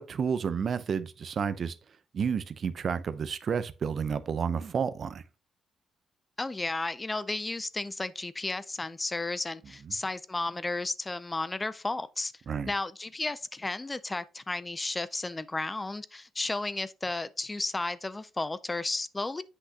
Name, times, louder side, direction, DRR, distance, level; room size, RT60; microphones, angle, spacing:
voice 1, 0.0-1.8 2.1-5.2 9.9-10.0 12.5-12.7, right 6 dB, 50° right, 0.6 m, -31 dB
voice 2, 6.4-12.3 12.7-19.4, left 2 dB, 20° left, 0.4 m, -33 dB
7.9 x 5.9 x 2.8 m
cardioid pair, 90°, 0 cm